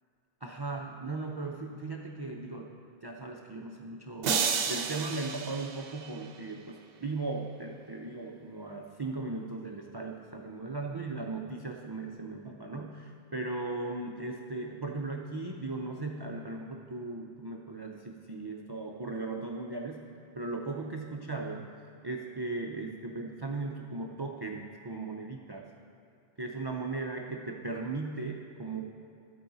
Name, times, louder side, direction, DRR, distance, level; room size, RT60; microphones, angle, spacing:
voice 1, 0.4-2.7 3.0-20.0 20.3-21.7 22.0-25.7 26.4-28.8, right 3 dB, 35° right, 1 dB, 0.4 m, -37 dB
sound 1, 4.2-6.5, right 6 dB, 60° right, 0.8 m, -32 dB
12.5 x 8.6 x 4.0 m, 2.6 s
omnidirectional pair, 1.2 m